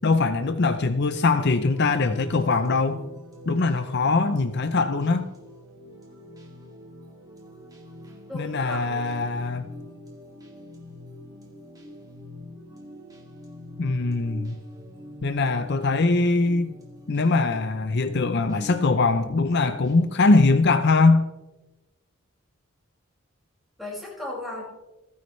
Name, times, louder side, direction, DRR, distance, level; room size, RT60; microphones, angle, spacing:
voice 1, 0.0-3.0 3.5-5.3 8.3-9.6 13.8-14.6 15.2-16.7 17.1-21.3, left 3 dB, 50° left, 9 dB, 0.6 m, -22 dB
sound 1, 1.2-20.1, left 1 dB, 15° right, 2.2 m, -45 dB
voice 2, 8.3-9.2 23.8-24.6, left 1 dB, ahead, -5 dB, 5.5 m, -36 dB
27.5 x 9.6 x 3.2 m, 1.1 s
head